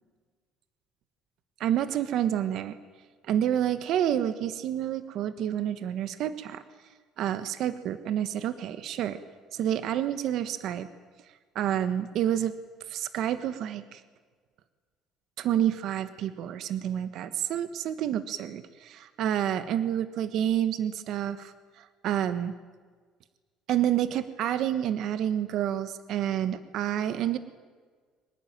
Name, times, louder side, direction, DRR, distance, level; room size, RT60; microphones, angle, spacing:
voice 1, 1.6-2.8 3.2-6.6 7.2-9.2 9.5-10.9 11.5-12.5 12.9-14.0 15.4-22.5 23.7-27.4, right 10 dB, 50° right, 12 dB, 1.3 m, -29 dB
24.5 x 20.0 x 9.1 m, 1.5 s
cardioid pair, 160°, 0 cm